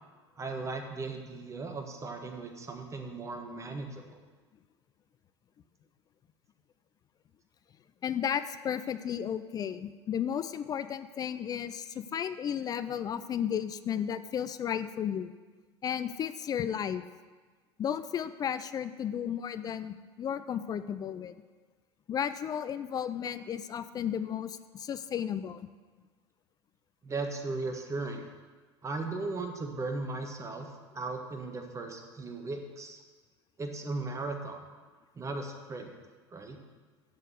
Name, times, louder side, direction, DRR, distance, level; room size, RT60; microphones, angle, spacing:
voice 1, 0.4-4.2 27.0-28.3 28.8-30.7 30.9-33.0 33.6-34.6 35.1-35.9 36.3-36.6, right 3 dB, 20° right, 4 dB, 1.5 m, -37 dB
voice 2, 8.0-15.3 15.8-17.0 17.8-21.3 22.1-25.6, left 8 dB, 25° left, 12 dB, 0.4 m, -33 dB
8.0 x 6.6 x 7.9 m, 1.4 s
figure-of-eight pair, 75°, 15 cm